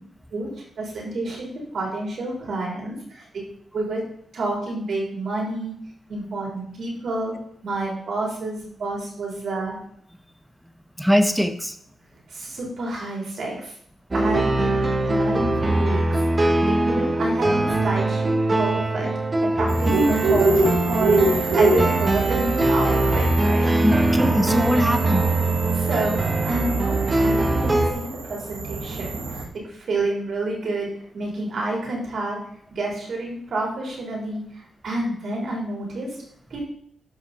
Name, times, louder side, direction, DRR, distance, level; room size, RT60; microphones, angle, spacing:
voice 1, 0.8-3.4 3.7-4.0 4.3-5.7 6.1-7.3 7.6-9.8 12.3-13.8 14.1-19.1 19.5-23.8 25.7-26.2 26.5-32.4 32.7-36.1 36.5-36.7, right 2 dB, 65° right, -2 dB, 3.7 m, -29 dB
voice 2, 11.0-11.8 23.8-25.3, equal, ahead, 9 dB, 0.8 m, -21 dB
sound 1, 14.1-27.9, right 2 dB, 30° right, 1.3 m, -22 dB
sound 2, 19.7-29.4, right 2 dB, 85° right, 1.3 m, -26 dB
13.0 x 5.5 x 4.2 m, 0.64 s
cardioid pair, 100°, 0 cm